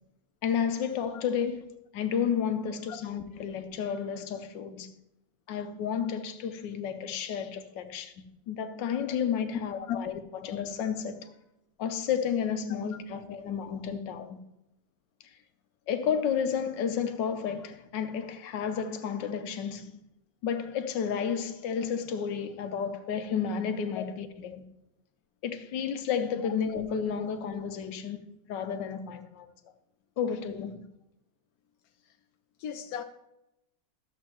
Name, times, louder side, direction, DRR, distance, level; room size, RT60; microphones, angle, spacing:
voice 1, 0.4-4.9 5.5-11.3 11.8-14.4 15.9-20.0 20.4-24.6 25.4-29.5 30.2-30.9, left 7 dB, 90° left, 1.5 m, -32 dB
voice 2, 32.6-33.0, left 9 dB, 70° left, 1.0 m, -36 dB
13.0 x 7.5 x 3.0 m
omnidirectional pair, 1.9 m